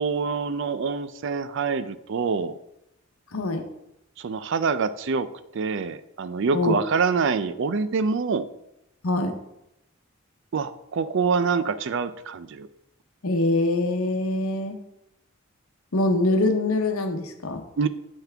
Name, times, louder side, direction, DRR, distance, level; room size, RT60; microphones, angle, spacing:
voice 1, 0.0-2.6 4.2-5.3 5.5-8.5 10.5-12.7 17.8-17.9, right 5 dB, 60° right, 13 dB, 0.4 m, -25 dB
voice 2, 3.3-3.7 6.5-6.8 9.0-9.4 13.2-14.8 15.9-17.6, left 2 dB, 85° left, 6 dB, 0.9 m, -24 dB
7.4 x 5.8 x 3.4 m, 0.84 s
head